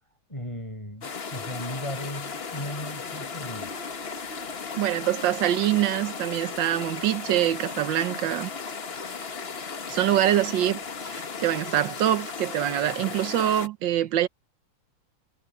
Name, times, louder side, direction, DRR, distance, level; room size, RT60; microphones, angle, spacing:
voice 1, 0.3-3.7, left 1 dB, 15° left, 7.8 m, -36 dB
sound 1, 1.0-13.7, left 5 dB, 35° left, 1.3 m, -36 dB
voice 2, 4.8-8.5 9.9-14.3, right 12 dB, 85° right, 1.6 m, -25 dB
omnidirectional pair, 2.0 m